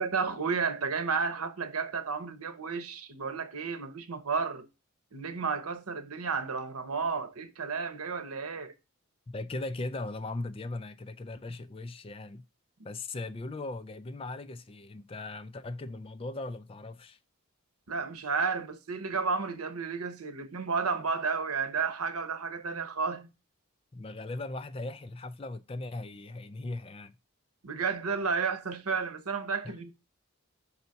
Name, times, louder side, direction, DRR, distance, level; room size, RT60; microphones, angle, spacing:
voice 1, 0.0-4.7 5.1-8.7 17.9-23.3 27.6-29.9, right 5 dB, 80° right, 1.0 m, -32 dB
voice 2, 9.3-12.4 12.8-17.2 23.9-27.1 29.6-29.7, left 2 dB, 25° left, 0.4 m, -38 dB
5.5 x 4.0 x 5.7 m
head